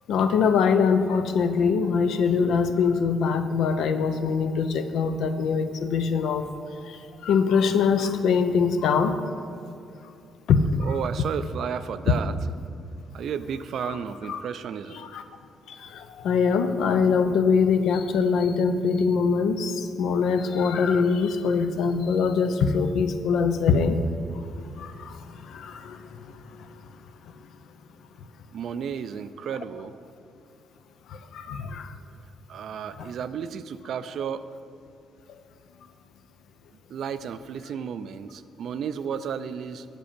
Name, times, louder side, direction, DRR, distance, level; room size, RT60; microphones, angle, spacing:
voice 1, 0.1-6.5 6.8-9.3 10.5-10.9 12.1-12.2 13.8-14.0 14.3-14.4 14.9-15.2 15.7-24.0 24.7-26.7 31.1-31.9, left 5 dB, 80° left, 9 dB, 0.5 m, -23 dB
voice 2, 10.8-12.4 13.1-15.0 28.5-29.9 32.5-34.5 36.9-39.9, right 7 dB, 65° right, 12 dB, 0.3 m, -33 dB
7.3 x 5.2 x 6.7 m, 2.6 s
cardioid pair, 90°, 0 cm